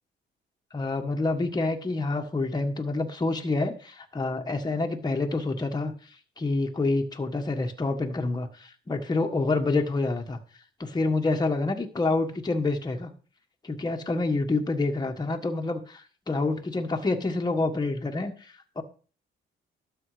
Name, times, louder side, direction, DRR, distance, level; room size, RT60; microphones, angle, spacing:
voice 1, 0.7-5.9 6.4-10.4 10.8-13.1 13.6-18.8, left 3 dB, 20° left, 3 dB, 1.5 m, -27 dB
12.5 x 7.2 x 5.0 m, 0.38 s
cardioid pair, 90°, 20 cm